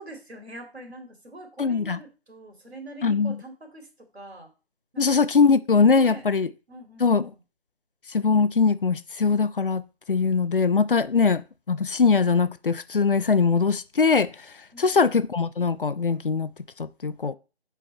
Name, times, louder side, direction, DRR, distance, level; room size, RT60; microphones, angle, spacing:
voice 1, 0.0-3.9 4.1-4.5 4.9-5.0 5.9-6.2 6.7-7.4 14.7-15.0, right 1 dB, 80° right, 2.9 m, -43 dB
voice 2, 1.6-2.0 3.0-3.4 5.0-6.5 7.0-7.3 8.1-9.8 10.1-14.5 14.8-16.5 16.8-17.3, left 5 dB, 55° left, 0.5 m, -21 dB
6.4 x 4.5 x 4.2 m
figure-of-eight pair, 170°, 32 cm